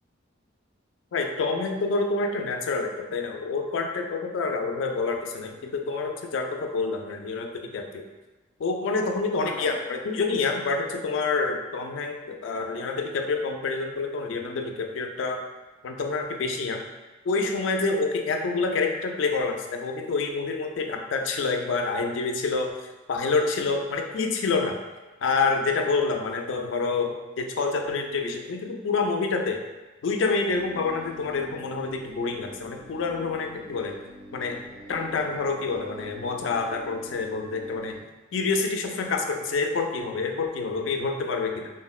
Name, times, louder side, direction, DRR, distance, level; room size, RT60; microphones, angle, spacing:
voice 1, 1.1-8.0 8.6-15.4 15.8-16.8 17.2-24.8 25.2-29.6 30.0-34.0 34.3-34.6 34.9-38.0 38.3-41.7, left 4 dB, 80° left, 4 dB, 0.3 m, -27 dB
sound 1, 30.5-38.0, equal, 10° right, 0.4 m, -46 dB
3.6 x 2.0 x 2.3 m, 1.2 s
head